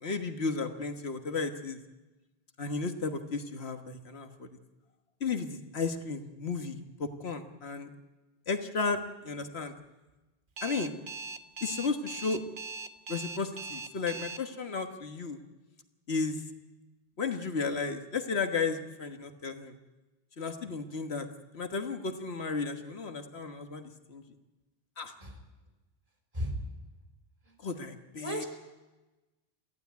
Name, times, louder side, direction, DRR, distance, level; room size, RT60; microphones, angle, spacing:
voice 1, 0.0-1.8 2.6-4.5 5.2-7.9 8.5-9.7 10.6-10.9 11.6-12.4 13.1-15.4 16.1-16.4 17.2-19.8 20.4-21.3 21.5-24.2 25.0-25.1 27.6-28.4, left 4 dB, 85° left, 7 dB, 1.7 m, -34 dB
Alarm, 10.6-14.4, right 4 dB, 55° right, 1.3 m, -40 dB
voice 2, 25.2-25.3 26.3-26.5 28.2-28.5, equal, 35° right, 3 dB, 3.7 m, -33 dB
22.5 x 15.5 x 9.4 m, 1.1 s
omnidirectional pair, 1.0 m